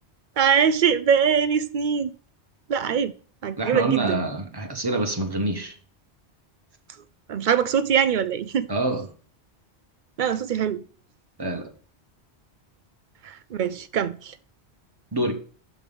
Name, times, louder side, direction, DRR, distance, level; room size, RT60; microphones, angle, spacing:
voice 1, 0.4-2.1 2.7-3.1 3.4-4.2 7.3-8.7 10.2-10.8 13.2-14.3, right 7 dB, 55° right, 0.6 m, -22 dB
voice 2, 3.6-5.7 8.7-9.1 11.4-11.7 15.1-15.3, right 2 dB, 20° right, 1.1 m, -26 dB
6.0 x 5.3 x 6.8 m
omnidirectional pair, 1.2 m